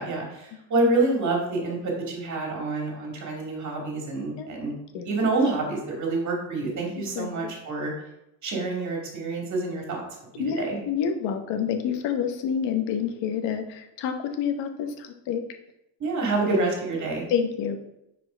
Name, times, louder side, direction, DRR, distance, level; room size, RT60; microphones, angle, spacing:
voice 1, 0.0-4.7 5.0-7.9 8.4-10.0 10.3-10.8 16.0-17.2, right 2 dB, 40° right, 0 dB, 2.4 m, -27 dB
voice 2, 7.0-7.3 10.4-15.4 17.3-17.8, left 7 dB, 75° left, 6 dB, 1.1 m, -28 dB
5.3 x 4.5 x 5.1 m, 0.84 s
cardioid pair, 120°, 43 cm